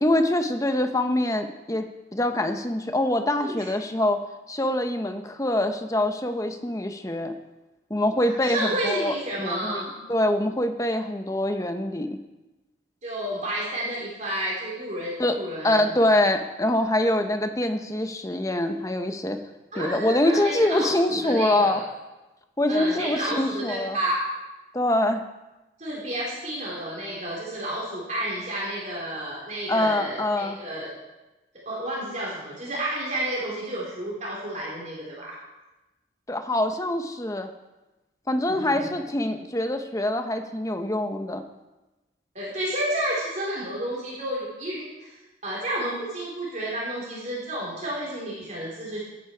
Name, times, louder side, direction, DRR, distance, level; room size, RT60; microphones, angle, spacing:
voice 1, 0.0-4.2 4.5-7.3 7.9-9.8 10.1-12.1 15.2-15.4 15.6-19.4 19.7-21.8 22.6-24.0 24.7-25.2 29.7-30.6 36.3-37.5 38.3-41.4, left 1 dB, 15° left, 7 dB, 0.8 m, -24 dB
voice 2, 8.2-10.0 13.0-15.9 19.7-21.8 22.7-24.2 25.8-30.9 31.7-35.4 38.6-39.0 42.3-45.2 45.4-49.0, right 1 dB, 40° right, -5 dB, 3.8 m, -31 dB
17.0 x 9.7 x 4.6 m, 1.1 s
head